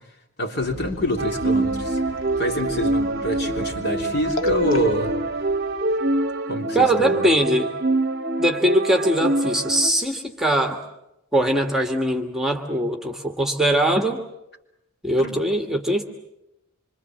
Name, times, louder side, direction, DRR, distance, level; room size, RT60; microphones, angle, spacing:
voice 1, 0.4-2.0 2.4-5.1 6.5-7.3 15.2-15.4, equal, 50° left, 2 dB, 3.5 m, -26 dB
sound 1, 0.6-6.4, left 1 dB, 65° left, 1.6 m, -39 dB
sound 2, 1.2-9.9, right 2 dB, 50° right, 0.9 m, -25 dB
voice 2, 6.7-7.7 8.4-10.8 11.3-14.2 15.0-16.0, right 1 dB, ahead, 4 dB, 1.5 m, -21 dB
26.5 x 25.0 x 7.5 m, 0.87 s
head